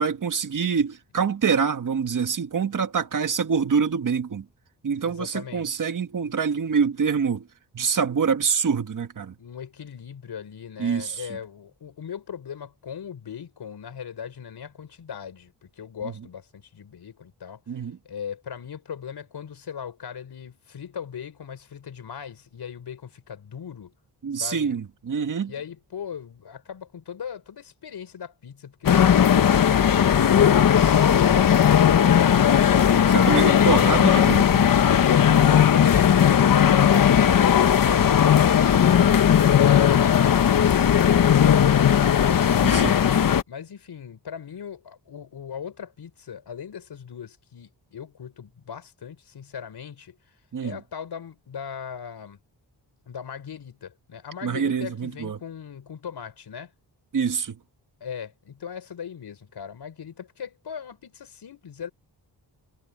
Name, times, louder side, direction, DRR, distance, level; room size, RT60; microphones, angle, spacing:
voice 1, 0.0-4.5 4.8-7.5 7.7-9.4 10.8-11.2 16.0-16.1 17.7-18.0 24.2-25.5 33.1-34.7 42.6-43.0 50.5-50.8 54.4-55.4 57.1-57.6, right 6 dB, 50° right, 1.8 m, -25 dB
voice 2, 4.9-5.8 9.4-17.6 18.0-23.9 24.3-24.7 25.5-32.9 42.7-43.2 43.5-50.2 50.6-52.4 53.1-56.7 58.0-61.9, left 7 dB, 70° left, 5.6 m, -39 dB
sound 1, 28.9-43.4, left 9 dB, 55° left, 0.9 m, -17 dB
wide cardioid pair, 155°, 41 cm